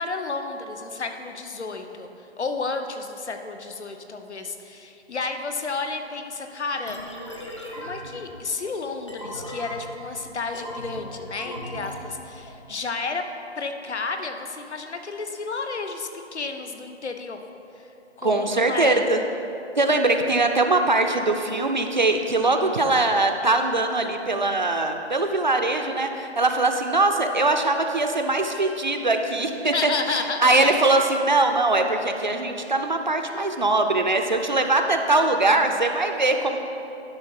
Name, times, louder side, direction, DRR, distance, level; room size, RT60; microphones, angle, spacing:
voice 1, 0.0-2.1 2.4-7.0 7.7-13.3 13.6-17.4 17.8-17.9 18.2-19.1 29.7-30.5, left 4 dB, 75° left, 6 dB, 0.9 m, -31 dB
sound 1, 6.9-12.6, equal, 25° left, 0.7 m, -38 dB
voice 2, 18.2-19.2 19.8-29.9 30.4-36.7, right 2 dB, 45° right, 5 dB, 0.5 m, -22 dB
11.0 x 3.9 x 5.7 m, 2.8 s
figure-of-eight pair, 170°, 34 cm